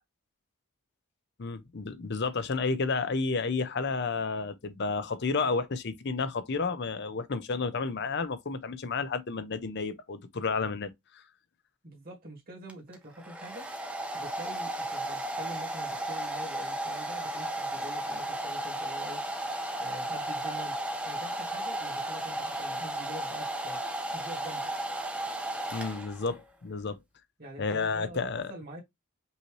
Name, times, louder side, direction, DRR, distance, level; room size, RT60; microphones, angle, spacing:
voice 1, 1.4-11.2 25.7-27.0 27.6-28.5, left 4 dB, 50° left, 0.6 m, -31 dB
voice 2, 11.8-13.7 14.1-19.2 19.8-20.8 21.0-23.8 24.1-24.7 27.4-28.8, equal, 40° right, 1.6 m, -45 dB
Domestic sounds home sounds, 12.7-26.4, right 1 dB, 5° right, 0.6 m, -34 dB
5.5 x 2.7 x 3.1 m
head